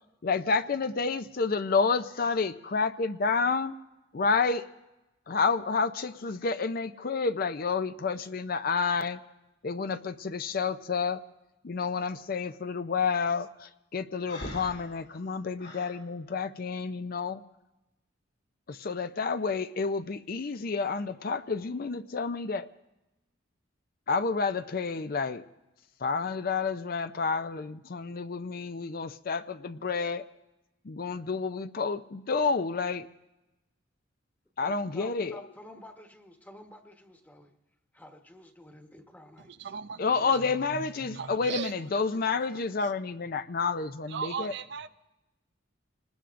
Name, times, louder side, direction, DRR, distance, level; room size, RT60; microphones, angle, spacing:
voice 1, 0.2-3.8 4.1-4.7 5.3-9.2 9.6-11.2 11.6-17.4 18.7-22.7 24.1-25.4 26.0-30.2 30.8-33.1 34.6-35.5 40.0-44.5, left 4 dB, 50° left, 11 dB, 0.5 m, -29 dB
Breathing, 14.3-16.0, left 1 dB, 65° left, 3.3 m, -42 dB
voice 2, 34.6-37.5 37.9-39.7, left 1 dB, 10° left, 4 dB, 1.1 m, -51 dB
voice 3, 39.4-40.4 41.1-41.7 42.3-42.6 44.1-44.9, right 6 dB, 60° right, 11 dB, 0.5 m, -38 dB
26.5 x 19.5 x 2.5 m, 0.98 s
head